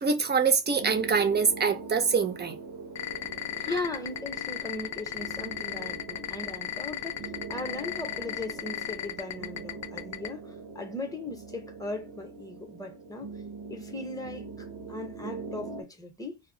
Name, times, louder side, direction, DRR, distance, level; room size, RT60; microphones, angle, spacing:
voice 1, 0.0-2.6, right 5 dB, 25° right, 0.6 m, -24 dB
sound 1, 0.6-15.8, right 4 dB, 75° right, 0.9 m, -42 dB
sound 2, 3.0-10.3, left 11 dB, 45° left, 0.5 m, -34 dB
voice 2, 3.7-13.3 13.7-16.4, left 2 dB, 10° left, 0.7 m, -38 dB
2.2 x 2.1 x 3.7 m
cardioid pair, 115°, 40 cm